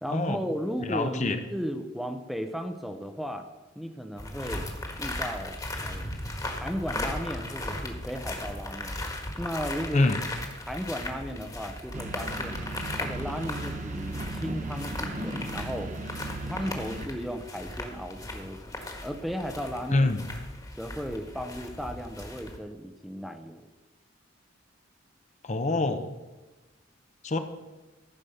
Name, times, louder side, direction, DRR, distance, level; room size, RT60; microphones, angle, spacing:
voice 1, 0.0-3.5 3.8-4.7 5.0-5.6 5.8-6.1 6.6-8.9 9.4-10.1 10.7-12.6 13.0-16.0 16.5-20.1 20.8-23.7, equal, ahead, 7 dB, 0.7 m, -35 dB
voice 2, 0.8-1.4 9.9-10.2 19.9-20.2 25.4-26.1 27.2-27.4, left 2 dB, 40° left, 8 dB, 0.7 m, -25 dB
sound 1, 4.2-22.6, left 1 dB, 20° left, 1.5 m, -37 dB
sound 2, 11.9-17.1, right 2 dB, 40° right, 1.1 m, -36 dB
14.0 x 5.2 x 6.6 m, 1.1 s
head